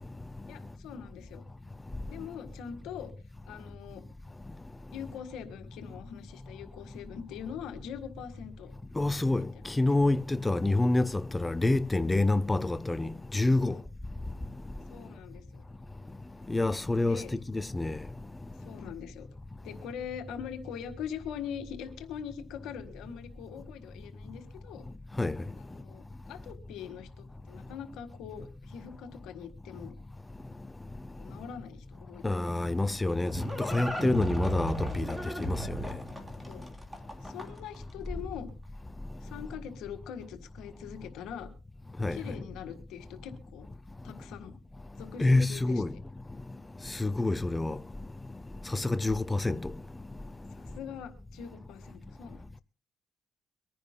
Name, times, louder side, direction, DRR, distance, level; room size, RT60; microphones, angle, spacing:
voice 1, 0.5-1.4 2.1-3.1 3.5-4.0 4.9-8.7 9.2-9.5 9.9-10.0 13.6-13.8 14.9-15.6 17.1-17.3 18.6-19.3 19.6-24.8 25.6-29.9 31.2-32.2 34.0-34.1 36.5-36.6 37.2-38.5 39.2-41.5 42.1-43.7 44.0-44.5 45.0-46.0 48.6-48.8 50.5-52.5, left 8 dB, 90° left, 1.6 m, -43 dB
voice 2, 9.0-13.8 16.5-18.0 25.2-25.4 32.2-35.8 42.0-42.2 45.2-45.9 47.0-47.8 48.7-49.7, left 2 dB, 15° left, 0.5 m, -27 dB
Livestock farm animals working animals, 32.8-37.8, right 1 dB, 10° right, 3.0 m, -35 dB
24.0 x 10.0 x 2.2 m
cardioid pair, 90°, 0 cm